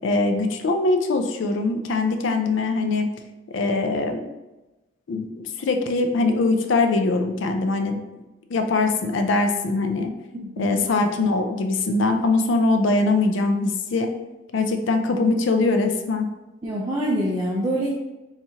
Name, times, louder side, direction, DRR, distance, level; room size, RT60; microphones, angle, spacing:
voice 1, 0.0-3.1 3.5-4.3 5.1-8.0 8.5-10.1 10.6-14.1 14.5-16.3, left 3 dB, 65° left, 6 dB, 0.4 m, -22 dB
voice 2, 10.6-10.9 16.6-17.9, right 1 dB, 20° right, -5 dB, 0.4 m, -25 dB
4.2 x 2.4 x 2.8 m, 1.1 s
head